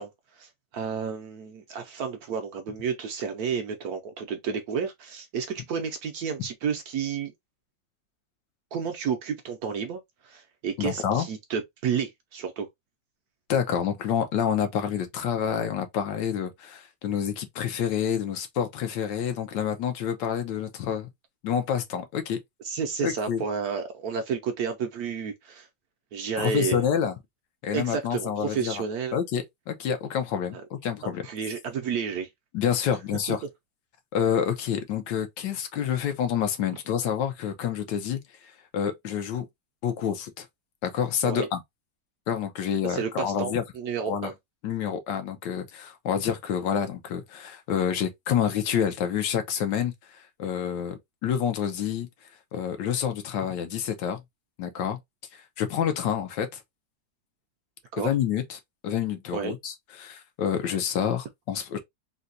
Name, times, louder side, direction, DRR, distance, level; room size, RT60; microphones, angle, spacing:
voice 1, 0.0-7.3 8.7-12.7 22.6-25.7 26.1-26.8 27.7-29.2 30.5-30.6 31.2-32.3 33.3-33.4 41.2-41.5 42.8-44.3 57.9-58.1 59.3-59.5, right 6 dB, 70° right, 0.9 m, -31 dB
voice 2, 10.8-11.3 13.5-21.1 21.4-22.4 23.0-23.4 26.4-27.1 27.6-28.8 29.1-31.2 32.5-33.4 34.1-38.2 38.7-39.5 39.8-40.5 40.8-41.6 42.3-43.6 44.1-44.3 44.6-52.1 52.5-54.2 54.6-55.0 55.3-56.6 58.0-61.8, left 8 dB, 80° left, 1.4 m, -28 dB
3.9 x 2.2 x 2.5 m
omnidirectional pair, 1.9 m